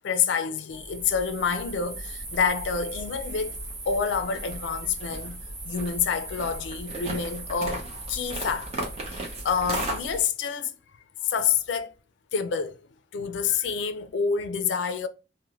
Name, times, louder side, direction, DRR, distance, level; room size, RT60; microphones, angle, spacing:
voice 1, 0.0-5.4 5.6-10.7 11.2-11.9 12.3-12.8 13.1-15.1, left 6 dB, 80° left, 0.4 m, -28 dB
sound 1, 0.7-10.2, right 2 dB, 35° right, 0.7 m, -36 dB
2.6 x 2.1 x 2.9 m
head